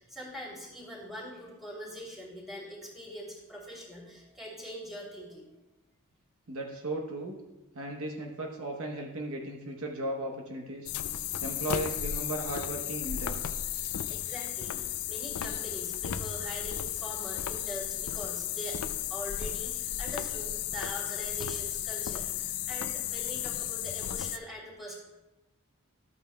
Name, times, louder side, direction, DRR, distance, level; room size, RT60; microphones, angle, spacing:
voice 1, 0.0-5.5 13.8-18.8 19.1-24.9, equal, ahead, -6 dB, 3.0 m, -43 dB
voice 2, 6.5-7.3 7.7-10.9 11.4-13.6, right 1 dB, 65° right, 0 dB, 1.0 m, -36 dB
sound 1, 10.9-24.4, left 11 dB, 80° left, 0.5 m, -34 dB
13.0 x 8.6 x 2.3 m, 1.0 s
head